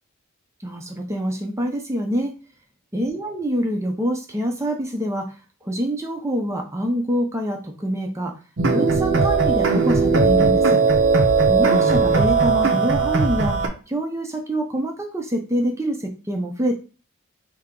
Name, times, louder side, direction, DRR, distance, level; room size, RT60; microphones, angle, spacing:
voice 1, 0.6-2.3 2.9-5.4 5.6-8.3 8.7-10.8 11.5-13.6 13.9-16.8, equal, 15° right, 2 dB, 0.5 m, -25 dB
sound 1, 8.6-13.7, right 4 dB, 55° right, 0.6 m, -18 dB
3.3 x 2.8 x 3.7 m, 0.34 s
head